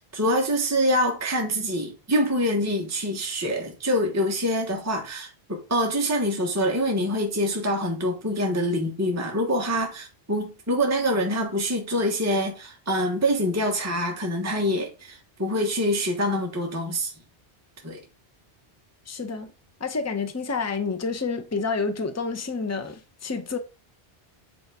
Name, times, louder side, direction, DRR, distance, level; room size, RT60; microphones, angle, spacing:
voice 1, 0.1-17.1 17.8-18.0, equal, 15° right, 1.2 m, -25 dB
voice 2, 19.1-19.5 19.8-23.6, left 4 dB, 15° left, 0.7 m, -29 dB
8.2 x 3.9 x 4.7 m
omnidirectional pair, 1.1 m